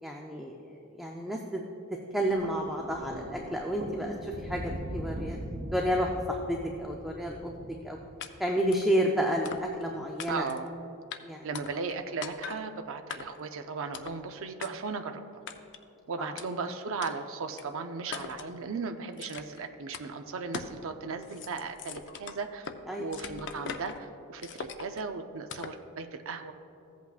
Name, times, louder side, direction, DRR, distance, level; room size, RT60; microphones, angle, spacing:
voice 1, 0.0-0.6 0.9-1.6 2.1-5.4 5.7-7.5 7.8-8.0 8.4-10.4 11.2-11.4 16.2-16.3 22.9-23.2, equal, ahead, 0 dB, 0.4 m, -30 dB
Thunder, 2.2-8.6 9.6-9.8, right 1 dB, 40° right, 0.9 m, -41 dB
sound 1, 8.2-8.3 8.7-8.9 9.4-9.9 10.2-10.7 11.1-11.2 11.5-12.0 12.2-12.6 13.1-13.5 13.9-14.2 14.6-14.7 15.5-15.8 16.4-16.5 17.0-17.1 17.6-17.7 18.1-18.5 19.2-19.6 19.9-20.1 20.5-20.8 21.1-22.8 23.1-24.0 24.4-25.0 25.5-25.8, left 6 dB, 55° left, 0.5 m, -41 dB
voice 2, 10.3-10.7 11.4-15.2 16.1-22.7 23.0-26.5, right 4 dB, 60° right, 7 dB, 0.5 m, -36 dB
15.0 x 8.2 x 2.4 m, 2.7 s
head